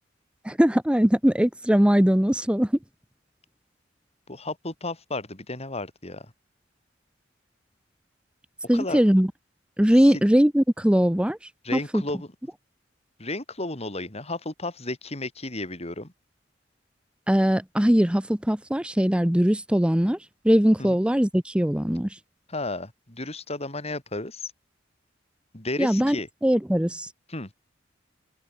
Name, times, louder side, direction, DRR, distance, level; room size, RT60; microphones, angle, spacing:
voice 1, 0.4-2.7 8.7-9.3 9.8-11.4 11.7-12.0 17.3-20.2 20.4-22.1 25.8-26.2 26.4-27.1, equal, 5° right, 0.8 m, -21 dB
voice 2, 4.3-6.3 8.7-9.0 10.1-10.2 11.6-12.3 13.2-16.1 20.8-21.0 22.5-24.5 25.5-26.3 27.3-27.5, left 2 dB, 35° left, 4.5 m, -33 dB
open air
head